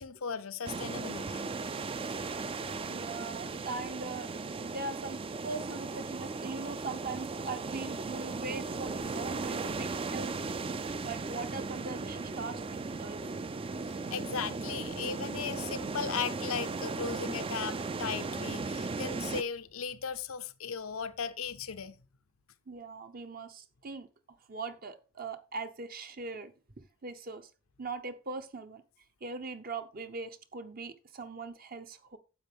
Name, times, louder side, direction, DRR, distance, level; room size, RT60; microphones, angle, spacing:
voice 1, 0.0-1.5 13.8-22.0, left 6 dB, 85° left, 0.7 m, -37 dB
sound 1, 0.6-19.4, right 3 dB, 25° right, 0.4 m, -37 dB
voice 2, 2.9-10.5 10.9-13.2 22.7-27.5 27.8-28.8 29.2-32.2, right 3 dB, 45° right, 0.8 m, -41 dB
9.7 x 7.6 x 3.5 m
head